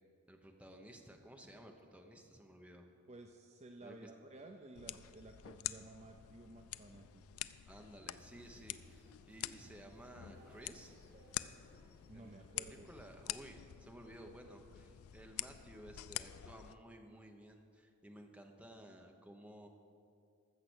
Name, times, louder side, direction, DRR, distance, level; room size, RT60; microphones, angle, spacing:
voice 1, 0.3-2.9 3.8-4.1 7.7-10.9 12.1-19.7, right 1 dB, 5° right, 2 dB, 0.9 m, -55 dB
voice 2, 3.1-7.2 12.1-12.9, right 2 dB, 30° right, 4 dB, 0.5 m, -54 dB
sound 1, 4.8-16.8, left 13 dB, 85° left, 0.4 m, -47 dB
sound 2, 8.1-13.4, equal, 50° right, 2.8 m, -65 dB
14.5 x 6.7 x 6.2 m, 2.4 s
head